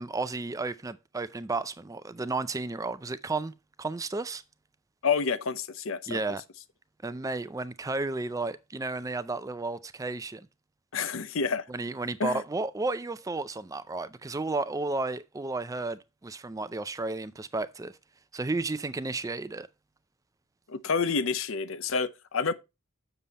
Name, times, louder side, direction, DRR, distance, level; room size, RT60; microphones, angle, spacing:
voice 1, 0.0-3.5 3.8-4.4 6.1-6.4 7.0-10.5 11.7-17.9 18.3-19.7, right 3 dB, 15° right, 0.4 m, -33 dB
voice 2, 5.0-6.2 10.9-11.6 12.2-12.4 20.7-22.5, left 5 dB, 65° left, 0.7 m, -28 dB
7.4 x 6.9 x 4.1 m
head